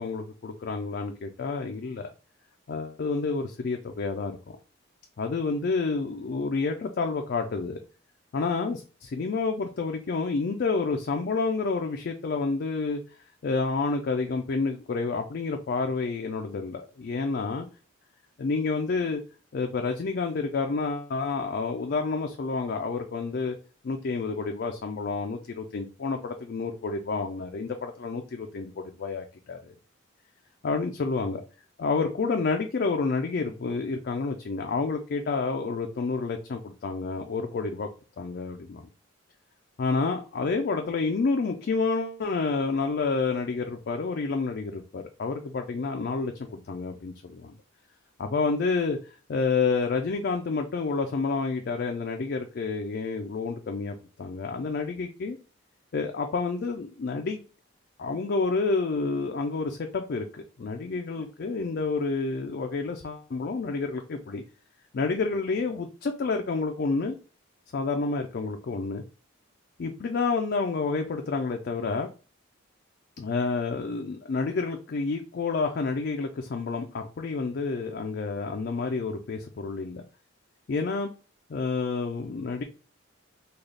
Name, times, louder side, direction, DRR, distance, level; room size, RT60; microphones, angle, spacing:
voice 1, 0.0-2.1 2.7-4.6 5.2-7.8 8.3-13.0 13.4-17.7 18.4-19.2 19.5-23.6 23.8-29.7 30.6-31.4 31.8-37.9 38.2-38.9 39.8-47.5 48.2-49.0 49.3-55.4 55.9-57.4 58.0-64.4 64.9-67.2 67.7-69.0 69.8-72.1 73.2-80.0 80.7-81.1 81.5-82.6, left 4 dB, 50° left, 0.4 m, -29 dB
3.8 x 2.3 x 3.2 m
head